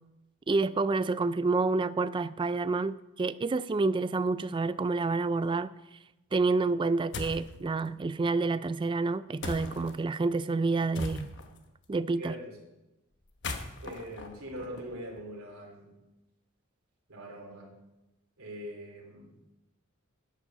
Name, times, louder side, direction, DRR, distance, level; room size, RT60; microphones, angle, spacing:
voice 1, 0.5-5.7 6.3-11.3 11.9-12.4, right 3 dB, 20° right, 0.3 m, -28 dB
sound 1, 7.1-7.5 9.4-9.9 10.9-11.6 13.2-15.2, left 2 dB, 55° left, 1.1 m, -39 dB
voice 2, 12.1-12.6 13.8-15.9 17.1-17.7 18.4-19.3, equal, 70° right, 3.2 m, -42 dB
11.0 x 7.9 x 6.3 m
head